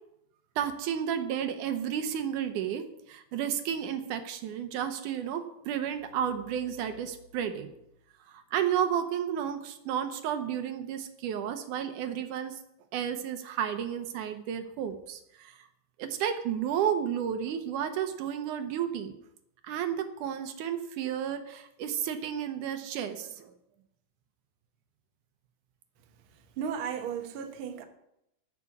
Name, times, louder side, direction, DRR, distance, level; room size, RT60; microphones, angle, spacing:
voice 1, 0.6-7.7 8.3-12.6 12.9-15.7 16.0-19.1 19.6-23.6, right 9 dB, 80° right, 2.3 m, -32 dB
voice 2, 26.6-27.8, right 7 dB, 60° right, 1.5 m, -34 dB
12.5 x 5.9 x 8.4 m
omnidirectional pair, 3.8 m